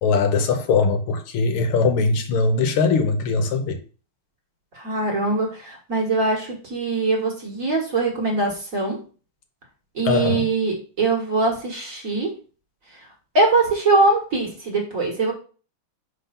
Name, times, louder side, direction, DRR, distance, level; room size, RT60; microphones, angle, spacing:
voice 1, 0.0-3.8 10.0-10.4, left 4 dB, 75° left, 1.8 m, -21 dB
voice 2, 4.7-9.0 9.9-12.3 13.3-15.3, right 3 dB, 40° right, 1.6 m, -22 dB
5.4 x 4.1 x 5.6 m
omnidirectional pair, 2.4 m